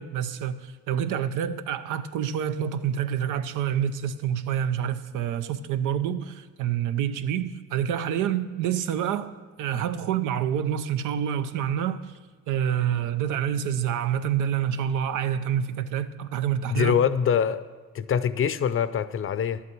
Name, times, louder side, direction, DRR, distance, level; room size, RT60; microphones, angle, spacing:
voice 1, 0.0-9.3 9.6-12.1 12.5-17.0, right 9 dB, 90° right, 0.6 m, -27 dB
voice 2, 16.7-17.7 17.9-19.6, left 8 dB, 45° left, 0.5 m, -24 dB
11.0 x 8.3 x 6.0 m
cardioid pair, 90°, 30 cm